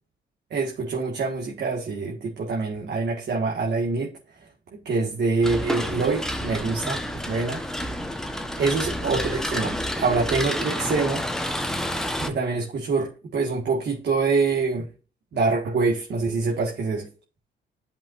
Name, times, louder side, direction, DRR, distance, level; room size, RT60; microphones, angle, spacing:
voice 1, 0.5-4.1 4.9-7.6 8.6-11.2 12.2-14.9 15.3-17.1, right 4 dB, 60° right, 1.8 m, -25 dB
sound 1, 5.4-12.3, equal, 5° left, 1.1 m, -29 dB
10.5 x 5.5 x 2.6 m
cardioid pair, 90°, 20 cm